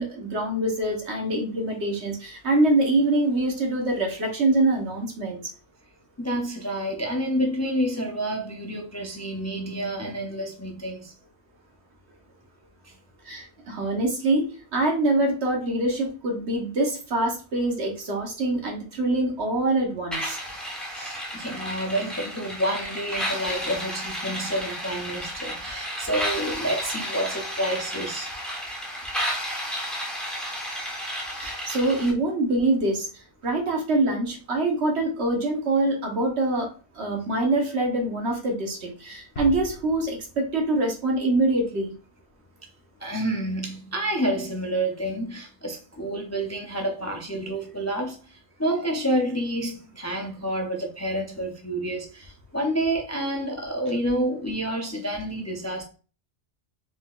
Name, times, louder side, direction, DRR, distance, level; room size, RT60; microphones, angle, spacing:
voice 1, 0.0-5.4 13.3-14.5 14.7-20.4 31.4-33.1 33.4-36.7 36.9-41.9, right 2 dB, 70° right, 1.4 m, -24 dB
voice 2, 6.2-11.1 20.9-28.3 43.0-55.8, right 1 dB, 25° left, 0.4 m, -29 dB
sound 1, 20.1-32.1, equal, ahead, 1.0 m, -32 dB
sound 2, 39.4-42.0, right 1 dB, 65° left, 1.2 m, -40 dB
4.7 x 3.7 x 2.4 m
omnidirectional pair, 1.2 m